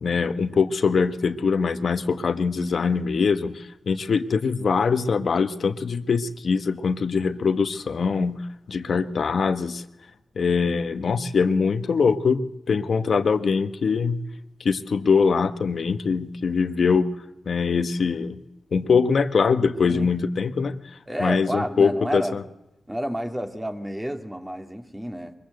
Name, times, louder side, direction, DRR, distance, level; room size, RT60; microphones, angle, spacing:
voice 1, 0.0-8.4 8.7-9.8 10.4-12.4 12.7-14.2 14.6-17.1 17.5-18.4 18.7-20.8 21.2-22.4, left 5 dB, 70° left, 9 dB, 1.3 m, -23 dB
voice 2, 21.1-22.4 22.9-25.3, equal, 10° right, 5 dB, 2.4 m, -30 dB
23.0 x 21.0 x 8.0 m, 0.89 s
cardioid pair, 75°, 0 cm